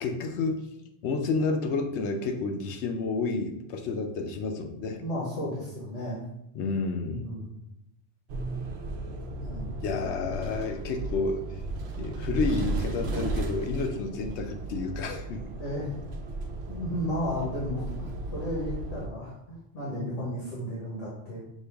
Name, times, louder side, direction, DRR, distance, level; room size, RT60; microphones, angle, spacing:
voice 1, 0.0-0.6 1.0-5.0 6.5-7.2 9.8-11.4 12.0-15.4, left 4 dB, 70° left, 5 dB, 0.9 m, -30 dB
voice 2, 5.0-6.2 7.1-7.6 9.3-9.7 15.6-16.0 16.7-21.4, equal, 90° left, -6 dB, 1.5 m, -34 dB
sound 1, 8.3-19.1, right 2 dB, 65° right, 0.8 m, -35 dB
6.4 x 2.4 x 3.4 m, 0.84 s
omnidirectional pair, 1.2 m